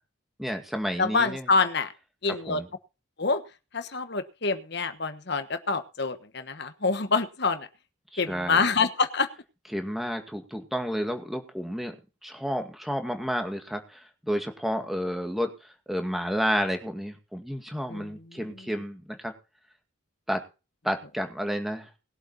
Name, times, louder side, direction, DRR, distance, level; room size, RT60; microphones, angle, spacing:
voice 1, 0.4-1.5 2.3-2.7 8.1-8.6 9.7-12.0 12.2-19.3 20.3-20.4 20.8-21.9, equal, ahead, 5 dB, 2.0 m, -31 dB
voice 2, 1.0-1.9 2.2-2.6 3.2-3.4 3.7-7.7 8.2-9.3 17.9-18.0, left 4 dB, 55° left, 10 dB, 1.3 m, -26 dB
20.5 x 8.0 x 4.1 m, 0.30 s
head